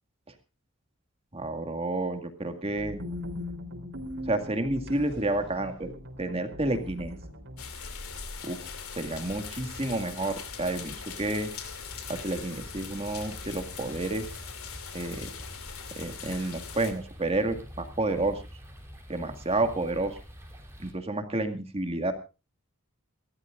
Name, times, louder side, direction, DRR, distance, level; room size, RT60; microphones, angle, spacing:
voice 1, 1.3-3.0 4.3-5.9 6.2-7.1 8.4-8.7 9.0-11.5 12.1-14.3 14.9-15.3 16.0-18.4 19.1-20.2 20.8-22.1, right 2 dB, 30° right, 6 dB, 2.1 m, -30 dB
sound 1, 2.6-7.7, left 1 dB, 60° right, 3.7 m, -40 dB
sound 2, 7.6-16.9, left 6 dB, 85° left, 2.8 m, -41 dB
sound 3, 9.1-20.9, equal, 10° right, 3.7 m, -46 dB
28.5 x 13.0 x 2.6 m, 0.31 s
head